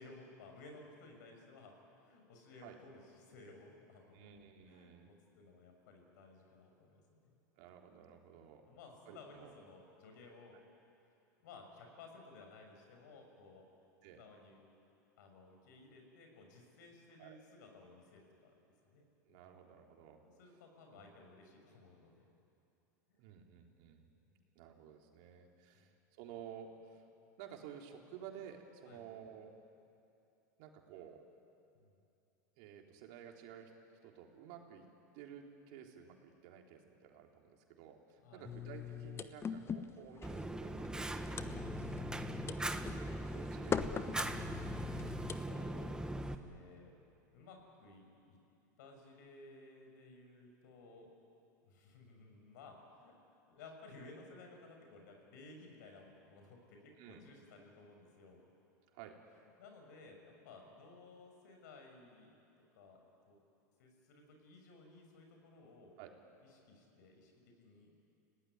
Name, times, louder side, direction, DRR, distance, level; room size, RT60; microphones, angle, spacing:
voice 1, 0.0-4.2 4.6-7.4 8.7-10.6 11.4-13.6 14.1-14.6 15.2-18.5 18.8-19.6 20.2-22.3 24.3-24.4 25.7-25.9 28.9-29.0 31.7-31.9 38.2-38.6 45.4-47.0 47.3-48.4 48.8-51.1 51.6-53.1 53.5-58.5 59.6-62.3 62.8-63.4 63.8-65.9 66.5-67.9, left 3 dB, 70° left, 3 dB, 6.4 m, -57 dB
voice 2, 4.1-5.1 7.6-8.7 9.1-9.5 14.0-14.3 17.2-17.4 19.3-20.2 20.9-21.1 23.2-24.1 24.6-27.0 27.4-29.5 30.6-31.2 32.6-33.7 34.0-34.9 35.1-42.8 43.3-44.6 57.0-57.2 58.9-59.2 66.0-66.1, right 8 dB, 60° right, 2 dB, 3.6 m, -53 dB
sound 1, 38.4-45.4, left 7 dB, 25° left, 1.1 m, -42 dB
Fire, 40.2-46.3, right 1 dB, 5° right, 1.5 m, -40 dB
29.5 x 18.0 x 9.8 m, 2.7 s
hypercardioid pair, 90°, 10 cm